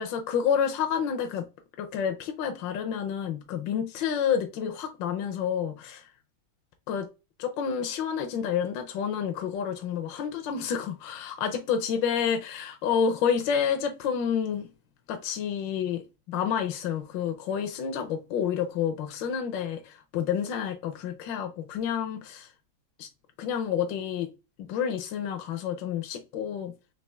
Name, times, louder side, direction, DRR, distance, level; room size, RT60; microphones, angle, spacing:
voice 1, 0.0-1.4 1.8-6.0 6.9-7.1 7.4-14.7 15.1-22.5 23.0-23.1 23.4-24.3 24.6-26.7, left 8 dB, 70° left, 1.3 m, -29 dB
4.2 x 2.9 x 3.3 m
omnidirectional pair, 2.2 m